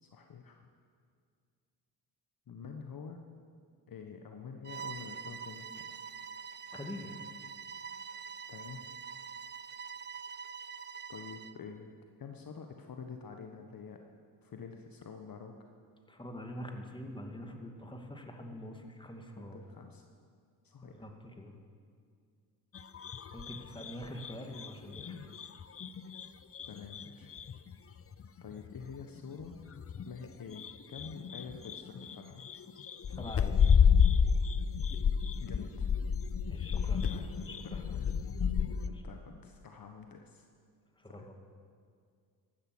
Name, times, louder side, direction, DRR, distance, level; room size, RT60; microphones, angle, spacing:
voice 1, 0.0-0.7 2.5-3.2 3.9-5.8 8.5-8.9 11.1-11.9 12.2-14.0 14.4-15.6 19.3-20.0 20.6-21.1 23.7-24.0 26.7-27.3 28.4-29.5 30.0-32.4 35.4-35.9 36.8-37.3 37.6-38.2 38.9-40.5 41.1-41.3, left 6 dB, 45° left, 4 dB, 1.4 m, -47 dB
Bowed string instrument, 4.6-11.6, right 6 dB, 20° right, 0.5 m, -45 dB
voice 2, 6.7-7.1 16.1-19.6 20.8-21.5 23.3-25.3 33.1-33.6 36.5-38.0 38.9-39.0 41.0-41.3, equal, 10° left, 3 dB, 2.4 m, -45 dB
sound 1, 22.7-26.3 26.5-30.3 30.5-38.9, left 7 dB, 30° left, 0.7 m, -30 dB
15.0 x 12.0 x 6.3 m, 2.2 s
hypercardioid pair, 55°, 50 cm